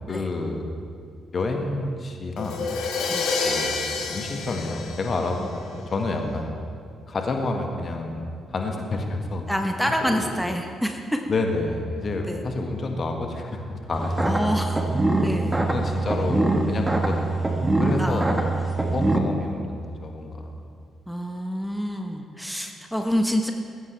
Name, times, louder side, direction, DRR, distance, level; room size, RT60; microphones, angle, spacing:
voice 1, 0.1-0.7 1.3-2.6 3.4-6.5 7.1-9.5 10.0-10.2 11.3-14.4 15.7-17.5 17.8-18.3 18.9-20.5, left 2 dB, 40° left, 3 dB, 2.0 m, -29 dB
Crash cymbal, 2.4-6.1, left 4 dB, 60° left, 1.6 m, -29 dB
voice 2, 9.5-11.3 12.3-12.4 14.2-14.8 15.2-15.6 18.0-18.4 21.1-23.5, equal, ahead, 3 dB, 1.3 m, -27 dB
sound 1, 13.9-19.2, right 2 dB, 15° right, 1.8 m, -23 dB
20.0 x 16.0 x 3.5 m, 2.3 s
figure-of-eight pair, 40°, 0 cm